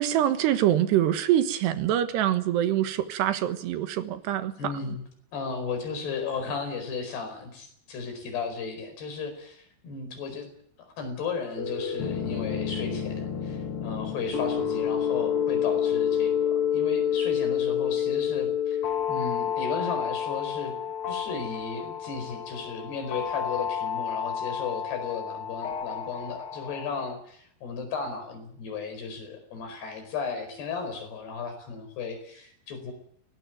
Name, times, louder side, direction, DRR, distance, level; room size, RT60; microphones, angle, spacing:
voice 1, 0.0-4.7, right 11 dB, 80° right, 10 dB, 3.5 m, -25 dB
voice 2, 4.6-5.0 5.3-10.5 10.8-20.7 21.1-32.9, left 5 dB, 75° left, 7 dB, 6.9 m, -35 dB
sound 1, 11.6-27.1, left 8 dB, 45° left, 1.9 m, -29 dB
21.0 x 19.0 x 9.2 m, 0.67 s
omnidirectional pair, 4.7 m